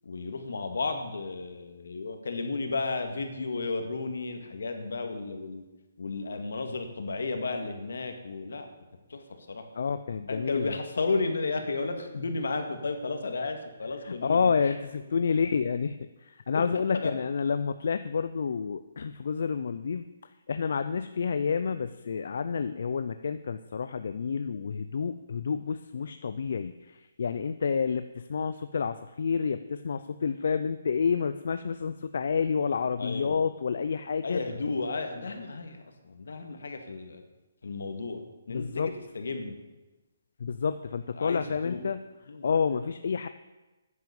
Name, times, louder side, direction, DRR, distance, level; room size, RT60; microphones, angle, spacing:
voice 1, 0.0-5.6 6.0-8.7 9.1-9.7 10.3-14.7 16.5-16.6 16.9-17.1 33.0-33.4 34.2-37.2 37.6-39.6 41.1-41.8 42.3-42.5, left 3 dB, 80° left, 6 dB, 2.1 m, -33 dB
voice 2, 9.8-10.8 14.0-20.1 20.5-34.4 38.5-38.9 40.4-42.0 42.4-43.3, left 6 dB, 60° left, 11 dB, 0.5 m, -29 dB
10.5 x 9.6 x 7.1 m, 1.1 s
hypercardioid pair, 165°, 0 cm